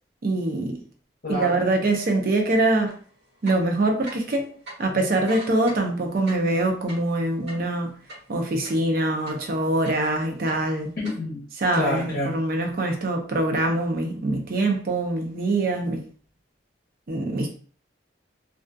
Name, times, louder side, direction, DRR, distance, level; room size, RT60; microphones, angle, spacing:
voice 1, 0.2-0.8 1.3-2.9 3.4-4.5 4.8-7.9 8.3-10.9 11.6-16.0 17.1-17.5, right 2 dB, 50° right, 0.4 m, -24 dB
voice 2, 1.2-1.6 11.0-11.4 11.7-12.4, left 1 dB, 50° left, 0.7 m, -28 dB
sound 1, 2.9-3.0 3.4-4.4 4.7-4.8 5.1-8.9 9.3-10.1 10.4-11.2, right 1 dB, 80° right, 1.1 m, -41 dB
2.3 x 2.3 x 2.5 m
head